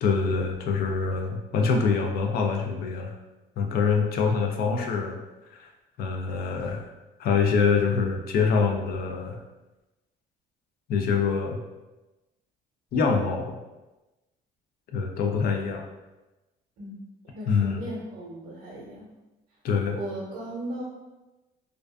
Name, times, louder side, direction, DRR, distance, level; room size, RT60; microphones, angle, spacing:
voice 1, 0.0-3.1 3.6-5.2 5.5-5.7 6.0-6.8 7.2-9.4 10.9-11.6 12.9-13.6 14.9-15.8 17.5-17.8 19.6-20.0, left 5 dB, 65° left, 3 dB, 0.4 m, -25 dB
voice 2, 17.3-19.1 19.9-20.8, right 1 dB, 75° right, -5 dB, 0.6 m, -36 dB
2.4 x 2.3 x 2.2 m, 1.1 s
cardioid pair, 110°, 17 cm